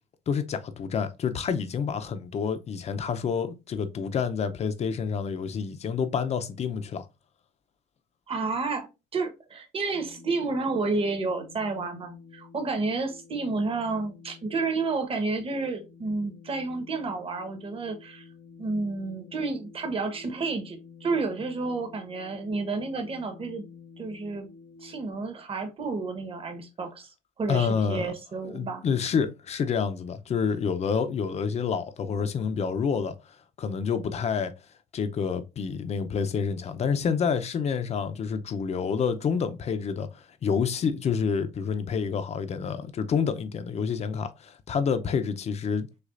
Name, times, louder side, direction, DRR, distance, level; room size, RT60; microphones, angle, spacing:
voice 1, 0.3-7.0 27.5-28.1 28.4-33.1 33.6-34.5 34.9-45.9, left 6 dB, 40° left, 0.6 m, -28 dB
voice 2, 8.3-18.2 18.6-23.6 24.0-24.5 24.8-27.1 27.4-28.8, right 3 dB, 35° right, 1.2 m, -30 dB
sound 1, 9.9-25.1, left 5 dB, 85° left, 1.6 m, -50 dB
6.4 x 2.4 x 2.5 m
cardioid pair, 110°, 17 cm